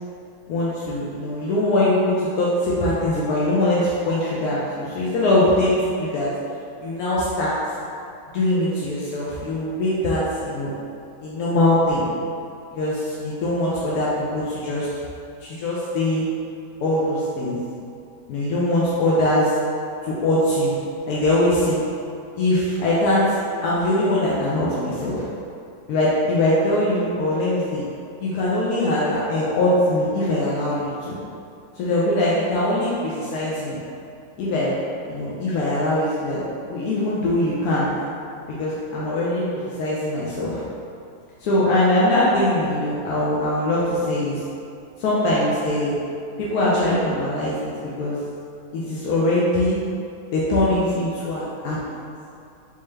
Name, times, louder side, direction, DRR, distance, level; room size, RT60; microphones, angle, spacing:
voice 1, 0.5-6.3 6.8-7.5 8.3-10.7 11.2-12.1 12.7-14.9 15.4-16.2 16.8-17.6 18.3-19.5 20.0-20.7 21.1-21.8 22.4-23.4 23.6-25.3 25.9-27.8 28.2-31.2 31.8-33.8 34.4-34.7 35.1-37.9 38.5-39.4 39.8-40.6 41.4-44.4 45.0-46.0 46.4-47.7 48.0-48.2 48.7-49.8 50.3-51.8, left 1 dB, 85° left, -7 dB, 1.1 m, -22 dB
3.7 x 2.7 x 3.1 m, 2.5 s
omnidirectional pair, 1.6 m